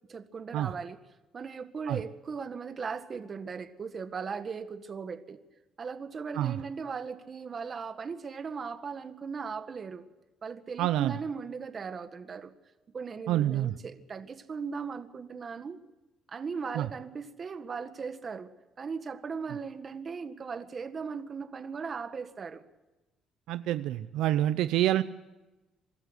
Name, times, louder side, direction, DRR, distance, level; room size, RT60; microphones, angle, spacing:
voice 1, 0.1-1.0 1.3-5.4 5.8-10.0 10.4-12.5 12.9-15.8 16.3-18.5 18.8-22.6, right 5 dB, 35° right, 9 dB, 1.8 m, -38 dB
voice 2, 10.8-11.2 13.3-13.8 16.7-16.9 23.5-25.0, right 13 dB, 80° right, 12 dB, 0.6 m, -27 dB
24.5 x 13.5 x 8.2 m, 1.1 s
cardioid pair, 115°, 0 cm